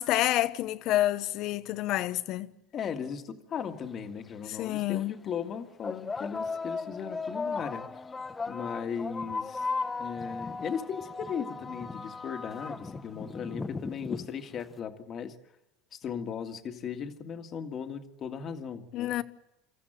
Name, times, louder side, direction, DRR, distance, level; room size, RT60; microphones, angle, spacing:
voice 1, 0.0-2.5 4.5-5.2 18.9-19.2, left 14 dB, 60° left, 1.0 m, -28 dB
voice 2, 2.7-8.0 8.5-9.7 10.0-15.4 15.9-19.1, left 7 dB, 40° left, 1.8 m, -37 dB
sound 1, 3.8-3.9 4.8-5.0 5.8-14.7, left 4 dB, 20° left, 0.8 m, -36 dB
26.5 x 14.0 x 9.0 m
supercardioid pair, 115°, 0 cm